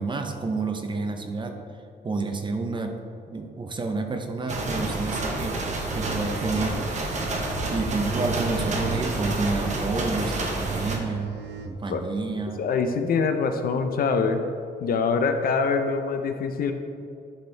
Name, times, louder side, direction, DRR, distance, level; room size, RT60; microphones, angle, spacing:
voice 1, 0.0-1.6 2.0-3.0 3.3-5.6 5.9-6.9 7.7-11.3 11.6-12.7, right 3 dB, 30° right, 5 dB, 0.6 m, -29 dB
sound 1, 4.5-11.0, right 2 dB, 45° right, 0.9 m, -29 dB
sound 2, 5.3-12.3, right 10 dB, 90° right, 0.6 m, -38 dB
voice 2, 12.6-14.4 14.8-16.7, left 5 dB, 60° left, 7 dB, 0.5 m, -24 dB
11.5 x 4.4 x 3.3 m, 2.5 s
wide cardioid pair, 155°, 17 cm